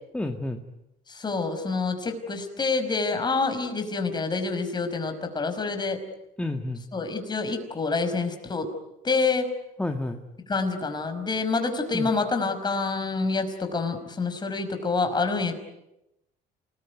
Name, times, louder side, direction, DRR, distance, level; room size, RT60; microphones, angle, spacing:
voice 1, 0.1-0.6 6.4-6.8 9.8-10.2 11.9-12.1, left 2 dB, 5° left, 4 dB, 1.8 m, -30 dB
voice 2, 1.1-6.0 6.9-8.7 9.0-9.5 10.5-15.5, left 4 dB, 25° left, 6 dB, 5.3 m, -27 dB
28.0 x 20.5 x 9.5 m, 0.88 s
cardioid pair, 110°, 17 cm